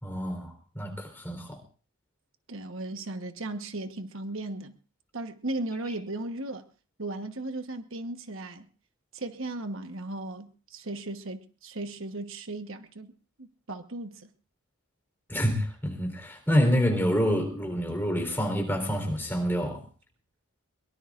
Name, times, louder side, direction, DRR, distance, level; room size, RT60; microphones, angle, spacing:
voice 1, 0.0-1.6 15.3-19.8, equal, 10° left, 3.9 m, -27 dB
voice 2, 2.5-4.7 5.1-6.6 7.0-8.7 9.1-13.1 13.4-14.3, right 2 dB, 60° right, 1.2 m, -36 dB
23.0 x 23.0 x 2.5 m
head